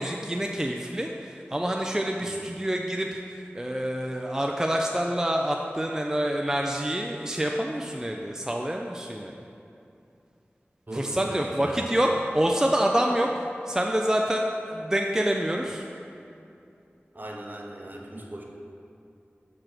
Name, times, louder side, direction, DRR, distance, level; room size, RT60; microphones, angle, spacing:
voice 1, 0.0-9.3 10.9-15.8, right 1 dB, 15° right, 1 dB, 0.4 m, -27 dB
voice 2, 10.9-11.9 17.1-18.4, right 1 dB, 45° right, 0 dB, 0.8 m, -38 dB
6.8 x 3.2 x 5.8 m, 2.7 s
wide cardioid pair, 45°, 4 cm